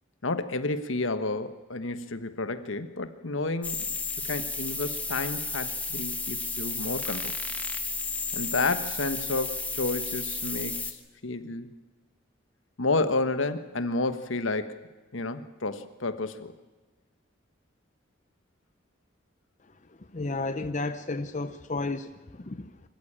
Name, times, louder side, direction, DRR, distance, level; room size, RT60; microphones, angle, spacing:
voice 1, 0.2-3.9 4.2-7.4 8.3-11.7 12.8-14.9 15.1-16.5, left 3 dB, 75° left, 10 dB, 1.3 m, -31 dB
sound 1, 3.6-10.9, left 3 dB, 5° left, 1.1 m, -33 dB
voice 2, 20.1-22.9, left 3 dB, 35° left, 10 dB, 0.6 m, -33 dB
24.5 x 14.0 x 8.8 m, 1.2 s
head